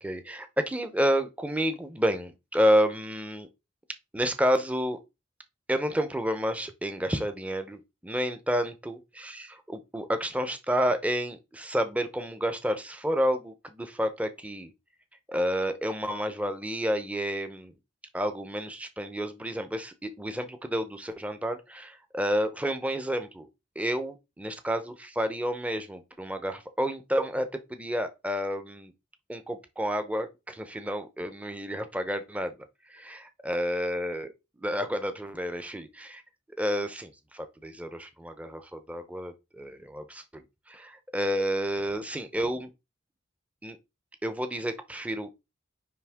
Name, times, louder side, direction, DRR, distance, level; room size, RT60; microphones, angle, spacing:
voice 1, 0.0-3.5 4.1-5.0 5.7-14.7 15.3-17.7 18.1-23.5 23.8-28.9 29.3-32.5 32.9-34.3 34.6-36.2 36.6-40.4 40.7-42.7 43.6-43.8 44.2-45.3, equal, 5° right, 0.8 m, -30 dB
9.4 x 3.3 x 3.6 m
head